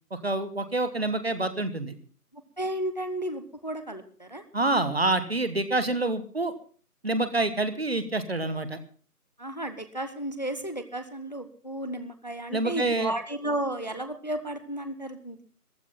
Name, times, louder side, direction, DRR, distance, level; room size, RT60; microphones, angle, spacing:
voice 1, 0.1-1.9 4.5-6.5 7.0-8.8 12.5-13.1, right 2 dB, 40° right, 11 dB, 1.4 m, -27 dB
voice 2, 2.6-4.4 9.4-15.4, right 1 dB, 30° left, 9 dB, 0.9 m, -33 dB
14.5 x 12.5 x 5.7 m, 0.42 s
figure-of-eight pair, 170°, 47 cm